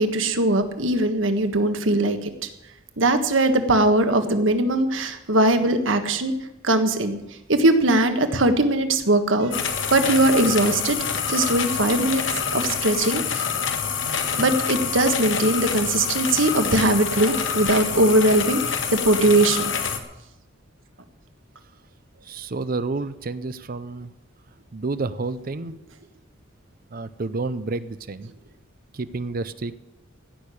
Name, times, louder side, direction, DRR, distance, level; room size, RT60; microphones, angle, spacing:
voice 1, 0.0-2.3 3.0-6.3 6.6-7.2 7.5-11.0 11.3-12.2 12.5-13.4 14.4-18.6 18.9-19.7, right 2 dB, 75° right, 8 dB, 1.5 m, -20 dB
sound 1, 9.5-20.0, left 7 dB, 65° left, 1.6 m, -26 dB
voice 2, 22.2-24.1 24.7-25.7 26.9-28.3 28.9-29.7, right 3 dB, 45° right, 13 dB, 0.6 m, -30 dB
16.0 x 6.7 x 9.8 m, 0.92 s
head